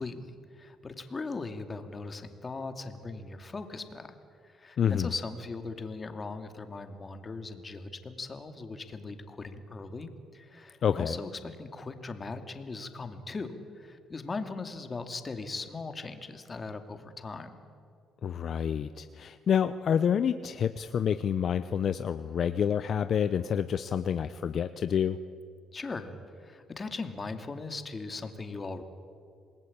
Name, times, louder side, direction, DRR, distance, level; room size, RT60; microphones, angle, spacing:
voice 1, 0.0-4.1 4.4-17.6 25.7-28.8, left 3 dB, 30° left, 7 dB, 2.5 m, -39 dB
voice 2, 4.8-5.1 10.8-11.2 18.2-25.2, left 8 dB, 55° left, 11 dB, 0.7 m, -28 dB
27.5 x 20.0 x 8.7 m, 2.3 s
cardioid pair, 100°, 0 cm